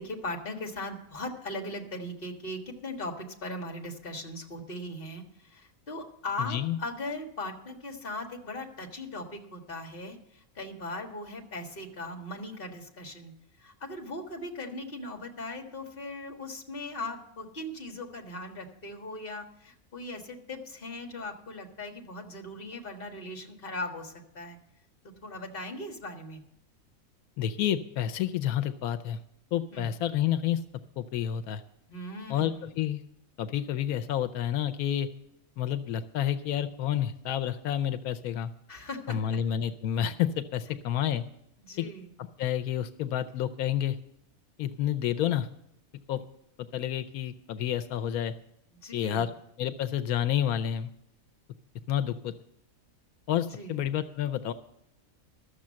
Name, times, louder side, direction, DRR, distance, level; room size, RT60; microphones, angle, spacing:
voice 1, 0.0-13.3 13.6-24.6 25.2-26.4 29.7-29.9 31.9-32.7 38.7-39.4 41.6-42.1 48.7-49.3 53.5-53.9, left 2 dB, 40° left, 3 dB, 1.7 m, -39 dB
voice 2, 6.4-6.8 27.4-29.2 29.5-30.6 31.0-31.6 32.3-33.0 33.4-35.1 35.6-38.5 39.1-41.2 41.8-41.9 42.2-44.0 44.6-45.5 46.1-46.2 46.6-48.3 48.9-49.3 49.6-50.9 51.9-52.3 53.3-54.5, left 10 dB, 90° left, 10 dB, 1.1 m, -29 dB
13.0 x 7.0 x 7.4 m, 0.77 s
omnidirectional pair, 1.5 m